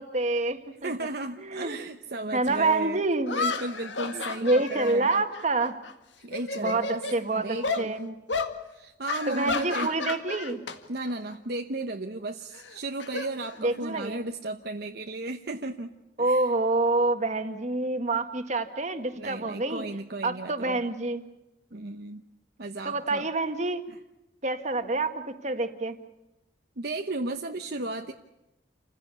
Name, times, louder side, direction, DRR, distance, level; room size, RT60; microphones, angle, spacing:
voice 1, 0.0-0.9 1.4-1.8 2.3-3.4 4.1-5.7 6.6-8.0 9.3-10.6 13.6-14.2 16.2-19.8 20.2-21.2 22.9-23.8 24.4-26.0, right 2 dB, 40° right, 7 dB, 1.8 m, -27 dB
voice 2, 0.8-3.0 3.4-5.2 6.2-7.1 7.3-8.2 8.7-9.9 10.9-16.5 19.1-20.8 21.7-22.2 22.6-23.3 23.9-24.0 26.8-28.1, right 2 dB, 60° right, 4 dB, 1.0 m, -34 dB
sound 1, 2.4-2.5 3.3-5.9 6.2-7.2 7.6-7.9 8.3-8.5 9.1-10.8 11.1-11.3 12.5-14.0, left 4 dB, 85° left, 1.9 m, -32 dB
28.5 x 16.0 x 8.4 m, 0.98 s
head